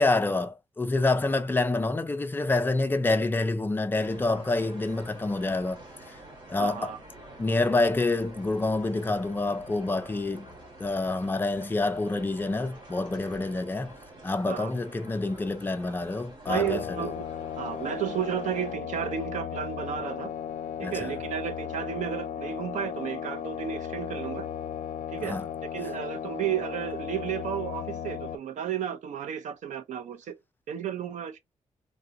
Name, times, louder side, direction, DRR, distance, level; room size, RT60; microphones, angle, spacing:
voice 1, 0.0-5.8 6.1-6.2 6.5-6.9 7.4-10.5 10.8-13.9 14.2-17.1 20.8-21.1 25.2-25.5, left 2 dB, 15° left, 0.4 m, -27 dB
sound 1, 3.9-18.7, right 1 dB, 35° right, 1.6 m, -48 dB
voice 2, 6.6-7.0 14.5-14.7 16.5-17.2 17.6-20.3 20.8-24.5 25.1-25.4 25.7-30.3 30.7-31.4, right 9 dB, 85° right, 0.6 m, -33 dB
sound 2, 16.5-28.4, left 8 dB, 80° left, 0.5 m, -35 dB
3.4 x 2.6 x 2.7 m
wide cardioid pair, 170°, 12 cm